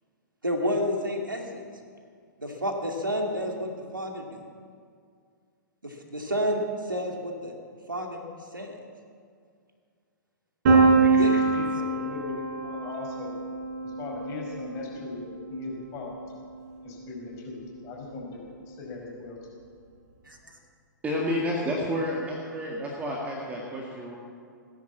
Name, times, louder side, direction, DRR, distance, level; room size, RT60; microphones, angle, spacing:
voice 1, 0.4-1.6 2.4-4.4 5.8-7.5 7.9-8.2 8.5-8.7 11.0-11.8 20.2-20.6, equal, 80° right, 2 dB, 2.5 m, -30 dB
Piano, 10.7-16.4, right 4 dB, 45° right, 4.4 m, -25 dB
voice 2, 10.9-13.3 13.8-16.2 16.8-17.6 17.8-18.4 18.7-19.4, left 4 dB, 30° left, -2 dB, 5.0 m, -39 dB
voice 3, 21.0-24.2, equal, 15° right, -2 dB, 2.0 m, -30 dB
18.5 x 10.5 x 7.3 m, 2.2 s
figure-of-eight pair, 110°, 11 cm